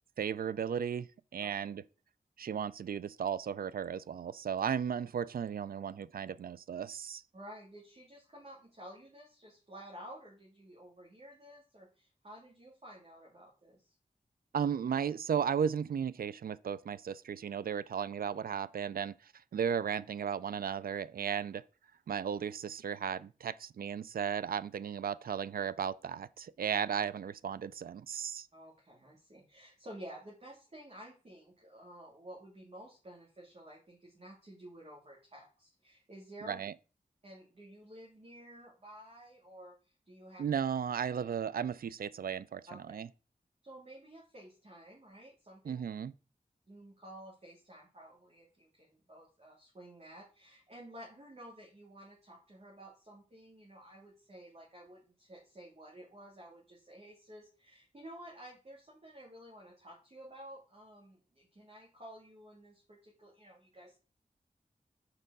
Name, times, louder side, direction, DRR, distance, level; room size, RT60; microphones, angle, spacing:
voice 1, 0.2-1.8 2.4-7.2 14.5-21.6 22.1-28.5 36.4-36.7 40.4-43.1 45.6-46.1, right 7 dB, 80° right, 0.4 m, -35 dB
voice 2, 7.3-13.9 28.5-36.6 37.2-40.4 42.7-43.0 43.6-45.8 46.7-64.0, right 1 dB, 45° right, 2.2 m, -52 dB
6.6 x 4.6 x 5.3 m
wide cardioid pair, 100°, 15 cm